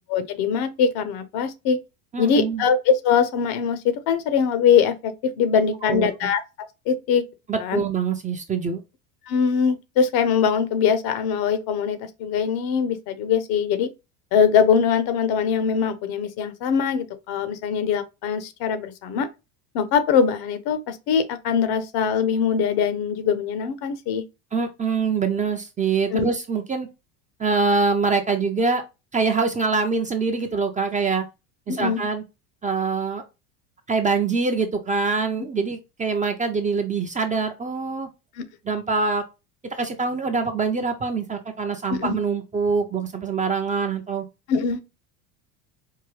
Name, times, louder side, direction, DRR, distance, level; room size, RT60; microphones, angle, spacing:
voice 1, 0.1-1.8 2.2-6.4 6.9-7.2 7.6-7.8 9.3-13.9 14.3-19.3 19.7-24.2 26.1-26.3 31.7-32.0 38.4-38.5 41.9-42.2 44.5-44.8, left 7 dB, 60° left, 0.8 m, -22 dB
voice 2, 2.1-2.7 5.8-6.1 7.5-8.8 24.5-26.9 27.4-28.8 29.1-31.3 31.7-32.2 32.6-33.2 33.9-38.1 38.6-39.2 39.8-44.2, right 4 dB, 20° right, 0.5 m, -24 dB
4.6 x 2.2 x 3.1 m
supercardioid pair, 110°, 43 cm